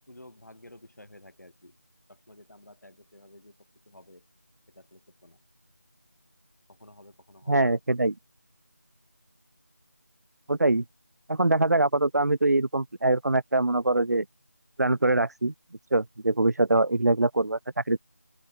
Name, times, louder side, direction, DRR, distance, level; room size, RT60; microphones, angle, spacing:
voice 1, 0.1-1.8 2.1-3.6 3.9-4.3 4.7-5.4 6.7-7.7, left 1 dB, 85° left, 3.4 m, -52 dB
voice 2, 7.5-8.1 10.5-10.8 11.3-14.2 14.8-15.5 15.9-17.6 17.9-18.0, right 2 dB, 85° right, 0.6 m, -23 dB
open air
figure-of-eight pair, 170°, 9 cm